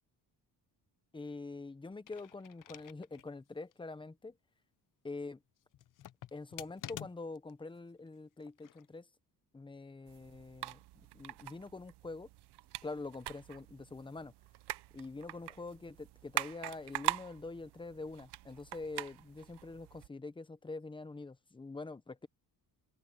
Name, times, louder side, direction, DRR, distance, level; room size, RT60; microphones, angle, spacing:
voice 1, 1.1-4.4 5.0-5.4 6.3-9.1 9.5-12.3 12.8-14.3 14.9-22.3, left 3 dB, 10° left, 0.9 m, -45 dB
sound 1, 1.9-3.3 3.7-3.8 5.7-7.5 8.4-8.9, left 11 dB, 50° left, 0.8 m, -49 dB
sound 2, 10.1-20.1, right 15 dB, 80° right, 0.8 m, -43 dB
open air
cardioid pair, 150°, 39 cm